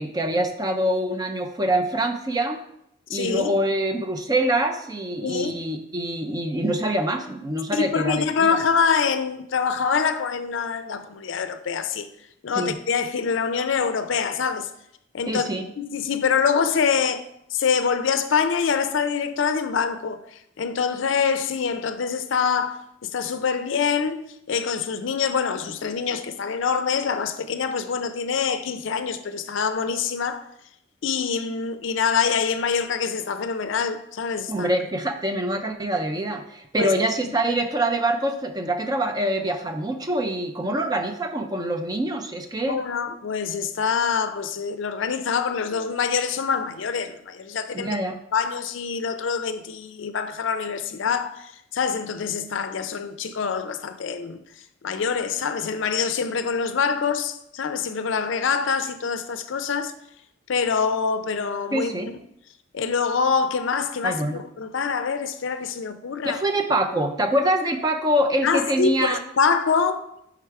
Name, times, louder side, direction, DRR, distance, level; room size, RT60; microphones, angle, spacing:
voice 1, 0.0-2.6 3.1-8.6 12.5-12.7 15.3-15.6 34.5-42.8 47.7-48.2 61.7-62.1 64.0-64.4 66.2-69.2, right 1 dB, 20° right, 0.4 m, -25 dB
voice 2, 3.1-3.5 5.2-5.5 7.7-12.1 12.4-14.7 15.1-17.3 17.5-20.2 20.6-24.2 24.5-30.4 31.0-34.7 36.8-36.9 37.3-37.4 42.7-48.0 48.3-54.4 54.8-59.9 60.5-62.2 62.7-66.4 68.4-70.1, left 6 dB, 65° left, 0.4 m, -25 dB
4.8 x 4.7 x 4.6 m
head